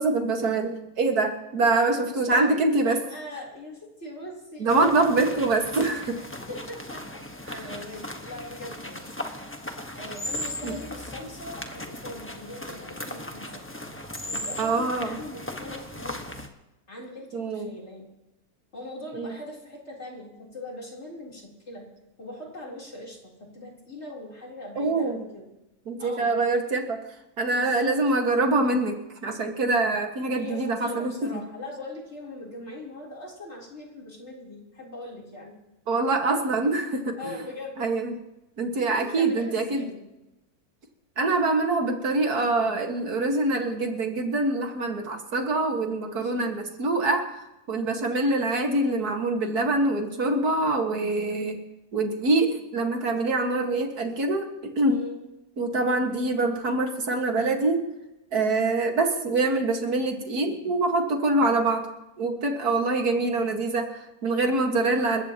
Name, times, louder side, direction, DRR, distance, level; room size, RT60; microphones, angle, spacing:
voice 1, 0.0-3.0 4.6-6.2 7.5-7.6 10.6-10.8 14.6-15.2 17.3-17.7 19.1-19.3 24.8-25.2 25.9-27.0 27.4-29.0 29.2-31.3 35.9-37.4 37.8-38.1 38.6-39.9 41.2-47.3 47.7-51.6 51.9-55.0 55.6-57.8 58.3-61.9 62.2-65.2, right 2 dB, 90° right, 4 dB, 2.3 m, -25 dB
voice 2, 1.8-5.1 6.0-7.0 7.5-9.1 10.0-13.6 14.2-16.5 16.9-18.1 18.7-21.9 22.2-25.5 26.0-26.4 27.5-27.9 30.3-35.6 37.2-37.8 38.8-40.0 46.0-46.4 54.9-55.2, left 1 dB, 45° left, -2 dB, 4.0 m, -41 dB
sound 1, 4.7-16.5, left 1 dB, 10° left, 1.2 m, -37 dB
28.5 x 14.5 x 2.9 m, 0.96 s
omnidirectional pair, 1.6 m